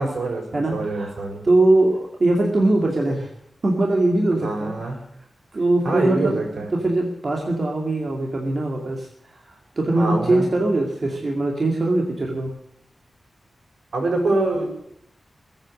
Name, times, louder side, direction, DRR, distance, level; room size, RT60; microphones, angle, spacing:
voice 1, 0.0-1.4 4.4-4.9 5.8-6.7 9.9-10.4 13.9-14.7, right 2 dB, 70° right, 2 dB, 6.0 m, -24 dB
voice 2, 0.5-1.1 1.4-3.3 3.6-4.7 5.5-6.4 6.7-12.5, right 2 dB, 40° right, 0 dB, 2.4 m, -21 dB
21.5 x 8.9 x 6.3 m, 0.73 s
wide cardioid pair, 170°, 0 cm